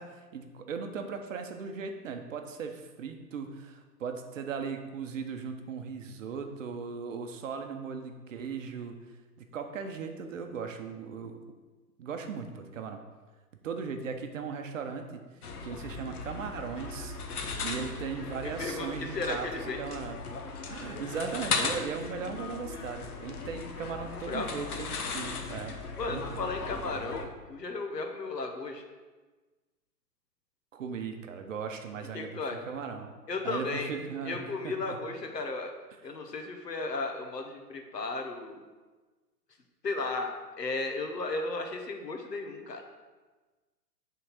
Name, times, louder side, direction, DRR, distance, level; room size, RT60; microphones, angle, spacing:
voice 1, 0.0-9.0 9.4-11.4 12.0-13.0 13.6-15.2 15.6-20.2 20.7-25.8 26.1-26.5 26.9-27.0 30.7-33.1 33.4-35.0, right 5 dB, 50° right, 6 dB, 0.9 m, -38 dB
sound 1, 15.4-27.3, left 4 dB, 65° left, 1.1 m, -37 dB
voice 2, 18.6-19.8 24.3-24.6 26.0-28.8 32.1-32.6 33.3-33.9 34.2-35.7 36.0-38.6 39.8-40.3 40.6-42.8, left 3 dB, 85° left, 4 dB, 1.2 m, -34 dB
6.0 x 3.9 x 5.9 m, 1.3 s
figure-of-eight pair, 125°, 48 cm